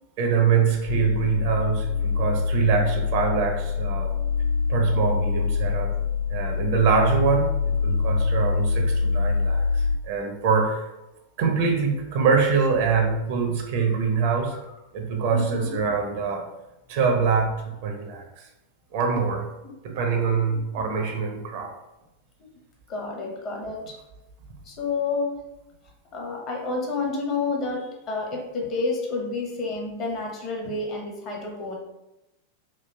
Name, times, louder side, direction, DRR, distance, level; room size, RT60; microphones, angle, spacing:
voice 1, 0.2-4.1 4.7-5.9 6.3-7.5 7.8-10.9 11.4-14.6 14.9-16.4 16.9-17.5 17.8-18.4 18.9-19.5 19.8-21.7, right 5 dB, 50° right, 2 dB, 0.5 m, -24 dB
sound 1, 0.9-10.0, left 5 dB, 55° left, 1.2 m, -25 dB
voice 2, 15.3-15.8 22.9-24.0 24.6-25.4 26.1-31.8, left 3 dB, 35° left, 0 dB, 0.7 m, -29 dB
3.2 x 2.3 x 2.2 m, 0.94 s
figure-of-eight pair, 90°, 0 cm